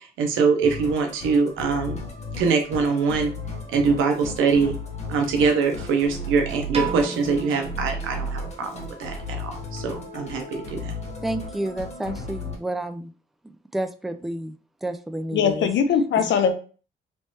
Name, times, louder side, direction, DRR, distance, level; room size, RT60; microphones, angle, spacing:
voice 1, 0.2-2.0 2.4-3.3 3.7-4.7 5.1-11.0, right 5 dB, 85° right, 4 dB, 0.7 m, -23 dB
Musical instrument, 0.6-12.6, left 1 dB, 35° left, 1.1 m, -35 dB
Piano, 6.7-9.0, right 4 dB, 30° right, 0.9 m, -33 dB
voice 2, 11.2-13.1 13.4-15.7 16.2-16.3, right 1 dB, ahead, 9 dB, 0.3 m, -30 dB
voice 3, 15.3-16.6, left 7 dB, 70° left, 8 dB, 0.7 m, -21 dB
3.3 x 3.1 x 2.8 m, 0.37 s
cardioid pair, 90°, 20 cm